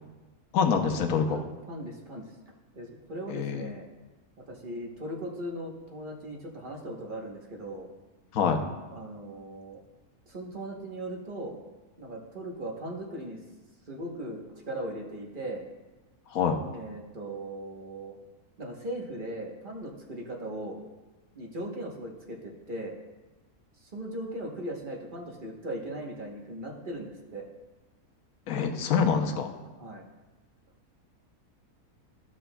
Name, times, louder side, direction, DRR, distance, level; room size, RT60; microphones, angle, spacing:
voice 1, 0.5-1.4 3.3-3.7 8.3-8.6 16.3-16.6 28.5-29.5, left 6 dB, 70° left, 4 dB, 1.2 m, -25 dB
voice 2, 1.7-2.3 2.7-3.9 4.5-7.9 8.9-9.8 10.3-11.6 12.0-13.4 13.9-15.6 16.7-18.1 18.6-20.8 21.3-22.9 23.8-27.4 29.8-30.0, right 1 dB, 35° right, 0 dB, 1.1 m, -38 dB
14.5 x 6.1 x 2.3 m, 1.2 s
omnidirectional pair, 1.6 m